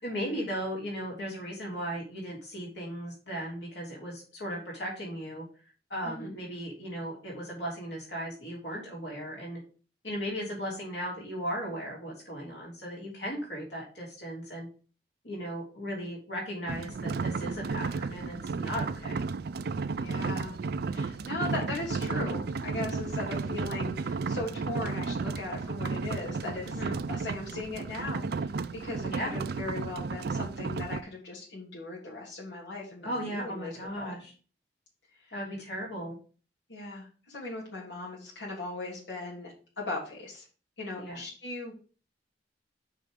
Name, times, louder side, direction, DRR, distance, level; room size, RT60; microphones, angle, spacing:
voice 1, 0.0-5.4 5.9-9.6 10.0-14.7 15.2-19.2 26.6-27.0 29.0-29.3 33.0-34.3 35.3-36.2 40.9-41.2, equal, 65° left, -3 dB, 3.2 m, -36 dB
voice 2, 6.0-6.4 19.9-20.5 20.9-26.8 27.1-28.5 28.8-34.1 36.7-40.5 40.8-41.7, left 2 dB, 90° left, -5 dB, 3.1 m, -38 dB
sound 1, 16.7-31.0, right 4 dB, 60° right, 0.4 m, -33 dB
6.0 x 5.6 x 5.0 m, 0.37 s
head